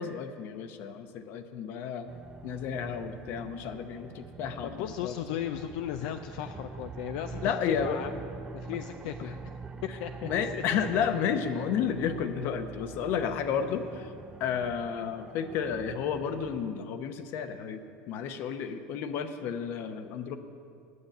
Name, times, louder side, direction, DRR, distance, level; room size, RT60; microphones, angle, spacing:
voice 1, 0.0-2.1 2.4-5.1 6.0-6.1 7.4-8.0 10.2-14.1 14.4-17.8 18.1-20.3, left 7 dB, 55° left, 9 dB, 0.8 m, -32 dB
sound 1, 2.1-16.7, right 4 dB, 20° right, 0.3 m, -44 dB
voice 2, 4.6-8.1 8.5-9.5 9.8-10.6, left 11 dB, 75° left, 8 dB, 0.4 m, -36 dB
9.5 x 7.0 x 8.9 m, 2.5 s
supercardioid pair, 135°, 4 cm